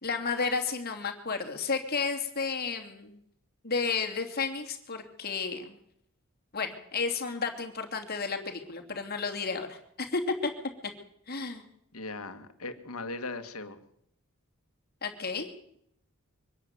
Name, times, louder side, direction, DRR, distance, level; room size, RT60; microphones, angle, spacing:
voice 1, 0.0-3.2 3.6-5.8 6.5-10.5 11.3-11.6 15.0-15.5, left 4 dB, 45° left, 4 dB, 2.8 m, -32 dB
voice 2, 11.9-13.8, left 3 dB, 75° left, 8 dB, 1.9 m, -38 dB
24.0 x 11.5 x 9.7 m, 0.73 s
head